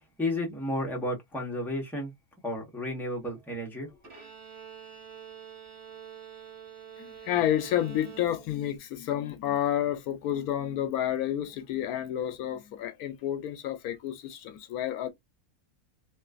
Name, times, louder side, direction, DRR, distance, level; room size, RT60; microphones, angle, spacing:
voice 1, 0.2-2.1 2.4-3.9, left 1 dB, ahead, 1.2 m, -32 dB
Bowed string instrument, 4.0-8.8, right 8 dB, 55° right, 1.8 m, -47 dB
voice 2, 7.0-15.1, left 11 dB, 85° left, 1.1 m, -30 dB
3.0 x 3.0 x 2.4 m
omnidirectional pair, 1.6 m